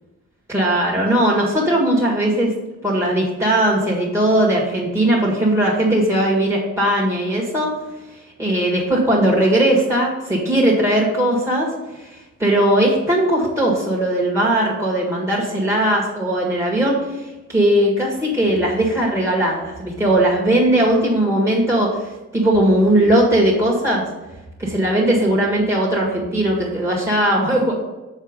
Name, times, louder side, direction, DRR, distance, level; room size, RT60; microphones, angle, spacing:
voice 1, 0.5-2.5 2.8-7.7 8.4-11.7 11.9-24.1 24.6-27.7, right 1 dB, 10° right, -4 dB, 1.7 m, -18 dB
6.6 x 4.7 x 5.2 m, 1.1 s
wide cardioid pair, 110°, 33 cm